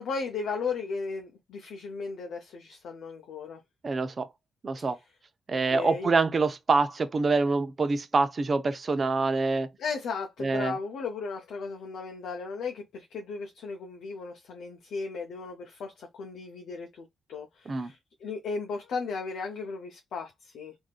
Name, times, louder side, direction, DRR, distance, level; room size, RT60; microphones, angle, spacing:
voice 1, 0.0-3.6 4.8-4.9 5.5-6.1 9.8-20.8, left 4 dB, 80° left, 0.5 m, -36 dB
voice 2, 3.8-4.3 4.6-5.0 5.5-9.7 10.4-10.7 17.7-17.9, right 3 dB, 45° right, 0.6 m, -26 dB
3.4 x 2.6 x 2.3 m
cardioid pair, 60°, 0 cm